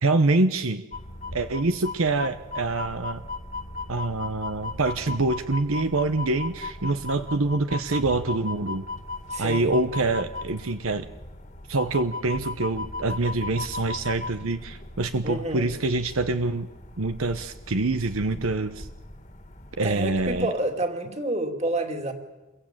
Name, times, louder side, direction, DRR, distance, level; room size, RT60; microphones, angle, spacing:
voice 1, 0.0-0.8 1.3-3.2 3.9-8.9 9.4-11.1 11.7-16.7 17.0-18.9 19.8-20.5, right 2 dB, 75° right, 9 dB, 1.0 m, -25 dB
sound 1, 0.9-20.4, left 3 dB, 35° left, 2.1 m, -37 dB
voice 2, 9.3-9.8 15.2-15.7 19.8-22.1, right 1 dB, 30° right, 4 dB, 2.6 m, -29 dB
27.5 x 22.5 x 8.9 m, 1.2 s
head